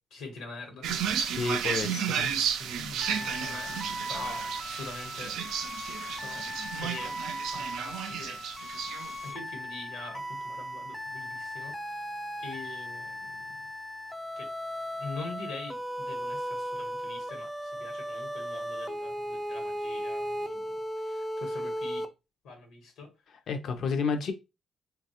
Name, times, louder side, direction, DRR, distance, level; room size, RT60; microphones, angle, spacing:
voice 1, 0.1-1.1 2.6-5.4 6.1-8.4 9.2-12.1 12.4-13.7 14.4-14.5 15.0-22.1 22.4-23.1, left 3 dB, 85° left, 1.0 m, -44 dB
sound 1, 0.8-9.3, right 8 dB, 85° right, 0.4 m, -33 dB
voice 2, 1.3-2.3 23.5-24.3, left 5 dB, 65° left, 0.5 m, -30 dB
sound 2, 3.0-22.1, equal, ahead, 0.3 m, -37 dB
3.1 x 2.2 x 2.8 m
cardioid pair, 90°, 0 cm